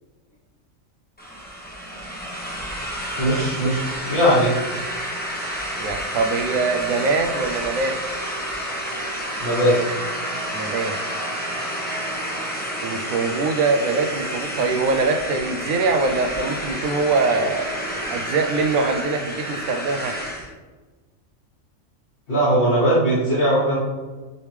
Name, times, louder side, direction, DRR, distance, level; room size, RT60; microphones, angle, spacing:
sound 1, 1.2-20.5, equal, 10° left, 0.8 m, -30 dB
voice 1, 3.2-4.5 9.4-9.8 22.3-23.8, equal, 45° left, -10 dB, 1.5 m, -19 dB
voice 2, 5.8-8.0 10.5-11.0 12.8-20.2, right 4 dB, 80° right, 5 dB, 1.1 m, -23 dB
9.7 x 3.4 x 3.2 m, 1.3 s
omnidirectional pair, 1.4 m